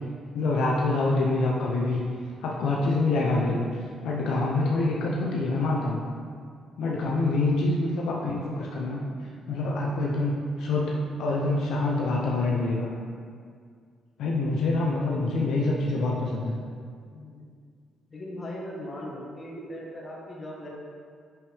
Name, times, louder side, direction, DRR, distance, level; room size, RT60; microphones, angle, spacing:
voice 1, 0.3-2.0 2.4-3.7 4.0-6.0 6.8-9.0 9.5-10.9 11.2-12.9 14.2-16.5, left 2 dB, 80° left, -3 dB, 0.8 m, -26 dB
voice 2, 14.4-16.3 17.1-17.4 18.1-20.7, left 1 dB, 35° left, -3 dB, 1.5 m, -40 dB
6.3 x 5.8 x 3.5 m, 2.1 s
cardioid pair, 90°, 0 cm